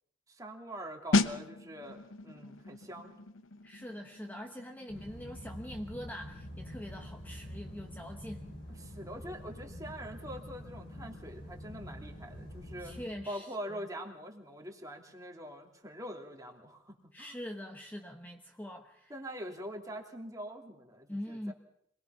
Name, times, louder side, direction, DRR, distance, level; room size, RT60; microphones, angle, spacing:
voice 1, 0.3-3.2 8.8-12.9 13.3-17.4 19.1-21.5, equal, 20° right, 2 dB, 2.9 m, -44 dB
sound 1, 1.1-11.6 11.9-12.2, left 3 dB, 90° left, 1.0 m, -38 dB
voice 2, 3.6-8.4 12.8-13.9 17.1-19.1 21.1-21.5, equal, 10° left, 4 dB, 1.1 m, -43 dB
sound 2, 4.9-13.1, equal, 60° left, 4.9 m, -46 dB
26.0 x 20.0 x 5.8 m, 0.70 s
head